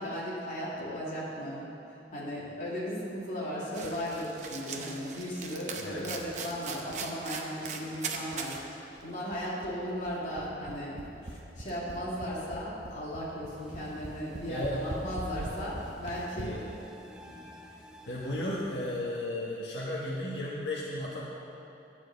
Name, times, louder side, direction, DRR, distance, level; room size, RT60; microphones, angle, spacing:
voice 1, 0.0-1.6 2.1-16.6, equal, 45° left, -8 dB, 2.6 m, -36 dB
sound 1, 3.7-8.6 9.0-9.1 9.3-16.4, right 4 dB, 40° right, 0.7 m, -41 dB
voice 2, 5.7-6.1 14.5-14.8 16.4-16.6 18.1-21.2, left 1 dB, 80° left, -6 dB, 1.5 m, -34 dB
sound 2, 13.5-19.3, equal, 5° right, 0.6 m, -52 dB
10.0 x 4.8 x 8.0 m, 2.8 s
head